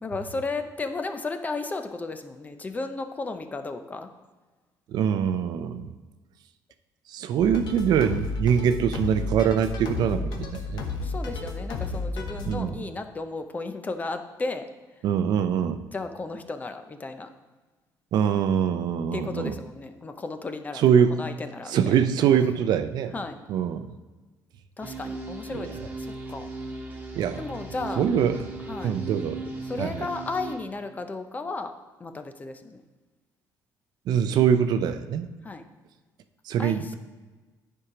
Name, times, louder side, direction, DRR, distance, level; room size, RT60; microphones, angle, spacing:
voice 1, 0.0-4.1 11.0-14.7 15.9-17.3 19.1-20.8 21.1-22.0 23.1-23.4 24.8-26.5 27.4-28.1 28.7-28.9 29.6-31.7 32.0-32.8 35.4-35.6 36.6-36.9, left 3 dB, 20° left, 8 dB, 0.6 m, -34 dB
voice 2, 4.9-5.9 7.1-10.8 12.5-12.8 15.0-15.8 18.1-19.5 20.7-21.2 21.7-23.1 23.5-23.9 27.1-27.4 28.0-28.5 28.8-29.4 29.8-30.1 34.1-35.3 36.5-36.9, right 8 dB, 65° right, 10 dB, 0.6 m, -23 dB
sound 1, 7.4-12.6, left 3 dB, 65° left, 1.0 m, -32 dB
sound 2, 24.8-30.6, right 2 dB, 20° right, 1.6 m, -37 dB
10.0 x 4.7 x 4.9 m, 1.3 s
cardioid pair, 125°, 7 cm